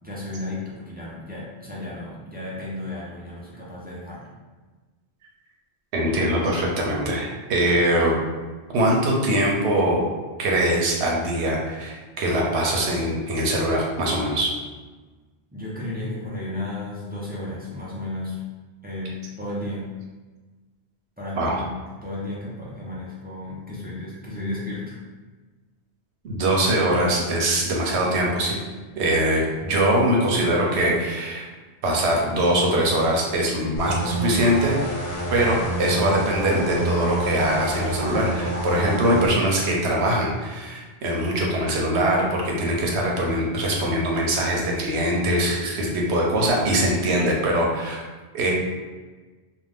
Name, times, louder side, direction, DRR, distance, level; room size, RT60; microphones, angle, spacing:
voice 1, 0.0-4.3 15.5-18.4 18.8-19.9 21.2-25.0, left 1 dB, 10° right, -7 dB, 0.5 m, -33 dB
voice 2, 5.9-8.2 8.7-10.0 10.4-14.5 21.3-21.6 26.2-28.6 28.9-31.5 31.8-34.8 35.3-48.0 48.3-48.5, right 1 dB, 85° right, -1 dB, 0.9 m, -22 dB
sound 1, 33.8-39.3, right 2 dB, 65° left, 0.7 m, -28 dB
2.5 x 2.2 x 3.4 m, 1.3 s
omnidirectional pair, 1.1 m